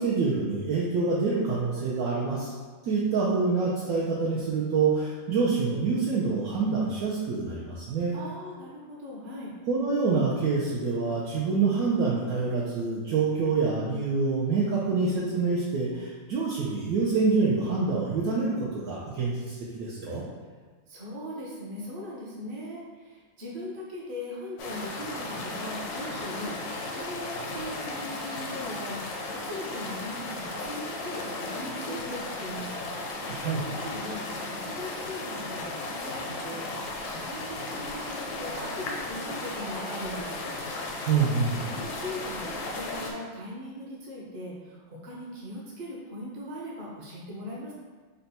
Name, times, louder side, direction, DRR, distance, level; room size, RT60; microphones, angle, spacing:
voice 1, 0.0-2.5 2.8-8.1 9.7-20.2 33.3-33.7 41.1-41.6, right 4 dB, 75° right, -5 dB, 0.8 m, -26 dB
voice 2, 8.1-9.5 20.9-32.8 33.8-40.5 41.6-47.7, left 1 dB, 50° right, -5 dB, 0.8 m, -39 dB
sound 1, 24.6-43.1, left 2 dB, 70° left, 0.9 m, -35 dB
4.0 x 2.2 x 4.0 m, 1.4 s
omnidirectional pair, 2.1 m